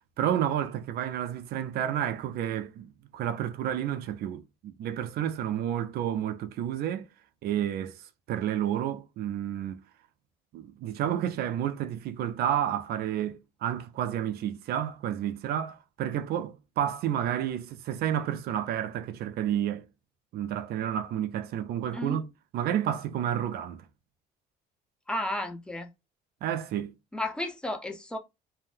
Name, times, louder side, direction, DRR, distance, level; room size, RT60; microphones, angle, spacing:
voice 1, 0.2-7.1 7.4-9.8 10.5-19.8 20.3-22.3 22.5-23.9 26.4-26.9, right 10 dB, 65° right, 0.4 m, -30 dB
voice 2, 25.1-25.9 27.1-28.2, left 1 dB, 5° left, 0.6 m, -33 dB
2.6 x 2.1 x 3.2 m
cardioid pair, 110°, 17 cm